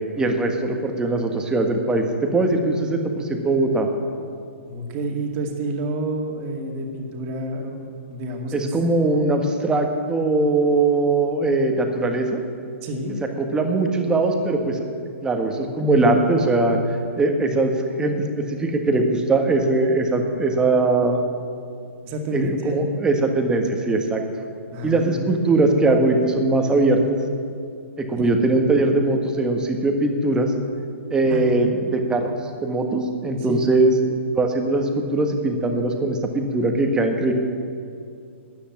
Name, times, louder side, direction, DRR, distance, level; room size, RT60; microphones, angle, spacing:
voice 1, 0.2-3.9 8.5-12.4 13.4-14.8 15.2-17.7 18.0-21.2 22.3-24.2 24.8-27.2 28.0-30.5 31.1-32.3 32.6-33.9 34.3-37.3, right 2 dB, 10° right, 4 dB, 1.5 m, -21 dB
voice 2, 4.7-8.7 12.8-13.2 22.0-22.8 24.7-25.3 28.2-28.3 31.3-31.7 33.5-33.6, right 1 dB, 30° right, 2 dB, 2.3 m, -29 dB
13.0 x 9.9 x 8.7 m, 2.4 s
figure-of-eight pair, 120°, 7 cm